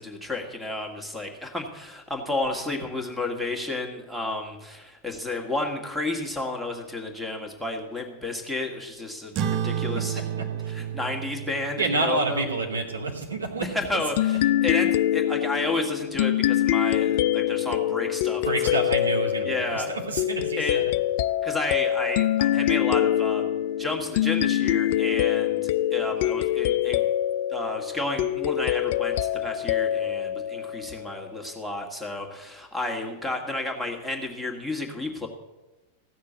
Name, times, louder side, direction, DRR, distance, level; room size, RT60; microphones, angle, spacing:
voice 1, 0.0-9.3 9.6-10.2 10.7-12.4 13.6-18.8 19.5-19.9 20.6-20.8 21.4-23.4 23.8-25.6 25.9-27.0 27.5-35.3, left 2 dB, 5° right, 3 dB, 2.0 m, -31 dB
sound 1, 9.3-14.2, right 9 dB, 35° right, 0.9 m, -32 dB
voice 2, 10.4-10.7 11.8-14.4 18.4-20.8 21.5-21.6, right 3 dB, 75° right, 0 dB, 2.7 m, -29 dB
sound 2, 14.2-31.3, left 12 dB, 50° left, 0.4 m, -25 dB
15.5 x 6.6 x 8.1 m, 1.1 s
figure-of-eight pair, 90°, 0 cm